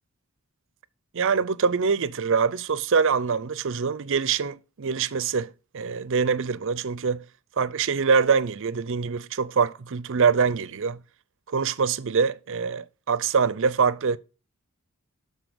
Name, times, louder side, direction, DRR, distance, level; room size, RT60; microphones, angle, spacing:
voice 1, 1.1-7.2 7.6-11.0 11.5-14.2, right 5 dB, 60° right, 0.5 m, -24 dB
12.0 x 4.2 x 6.8 m
head